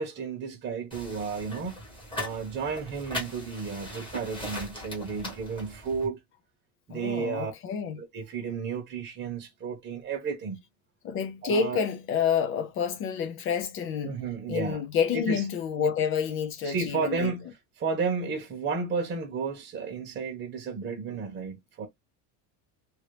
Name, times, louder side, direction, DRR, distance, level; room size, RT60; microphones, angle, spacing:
voice 1, 0.0-1.8 2.2-6.2 6.9-7.5 8.0-10.6 11.4-11.9 14.0-14.9 15.1-15.5 15.8-15.9 16.6-21.9, right 5 dB, 25° right, 0.9 m, -32 dB
sound 1, 0.9-6.1, left 1 dB, 10° left, 1.2 m, -39 dB
voice 2, 6.9-8.0 11.0-14.2 14.5-17.3, left 7 dB, 30° left, 0.4 m, -29 dB
2.8 x 2.7 x 3.2 m
cardioid pair, 170°, 42 cm